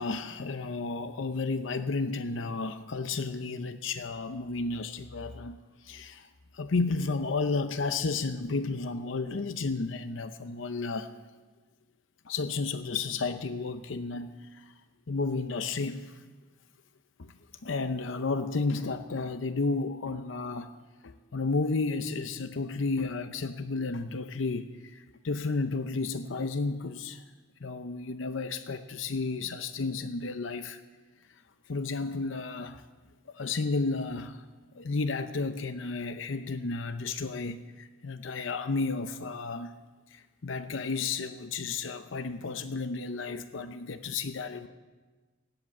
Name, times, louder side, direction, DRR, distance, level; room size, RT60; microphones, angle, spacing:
voice 1, 0.0-6.3 6.5-11.1 12.3-14.7 15.1-16.2 17.2-17.3 17.6-20.7 21.0-27.2 27.6-30.8 31.7-32.8 33.3-34.4 34.8-39.7 40.1-44.7, left 3 dB, 75° left, 10 dB, 0.7 m, -32 dB
18.0 x 8.0 x 8.4 m, 1.3 s
head